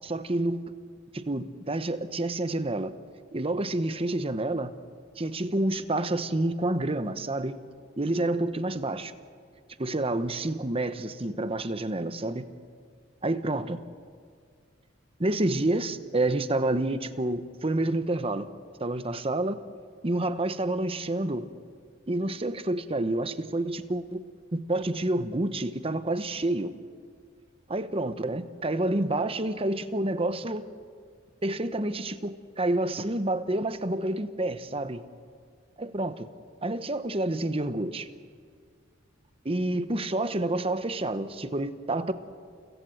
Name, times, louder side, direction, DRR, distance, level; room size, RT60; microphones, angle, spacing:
voice 1, 0.0-0.6 1.1-2.9 3.3-4.7 5.2-7.6 8.0-9.1 9.8-12.5 13.2-13.8 15.2-18.5 18.8-19.6 20.0-21.4 22.1-24.2 24.5-26.7 27.7-30.6 31.4-35.0 35.8-36.3 36.6-38.1 39.4-42.1, right 2 dB, 30° right, 1.0 m, -28 dB
29.0 x 16.0 x 7.8 m
head